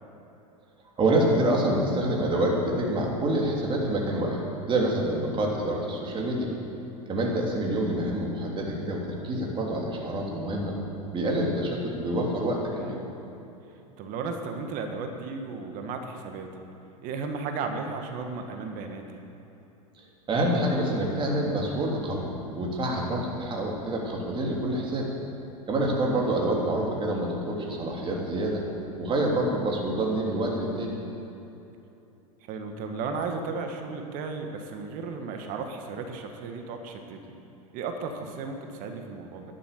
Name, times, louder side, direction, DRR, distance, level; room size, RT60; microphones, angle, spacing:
voice 1, 1.0-4.4 4.7-6.5 7.1-10.7 11.1-13.0 20.3-25.1 25.7-28.6 29.0-30.9, right 1 dB, 25° right, -1 dB, 3.1 m, -27 dB
voice 2, 12.7-13.1 14.0-16.5 17.0-19.0 26.1-26.4 32.4-37.4 37.7-39.4, right 4 dB, 45° right, 5 dB, 1.7 m, -35 dB
12.0 x 11.0 x 6.8 m, 3.0 s
hypercardioid pair, 95°, 19 cm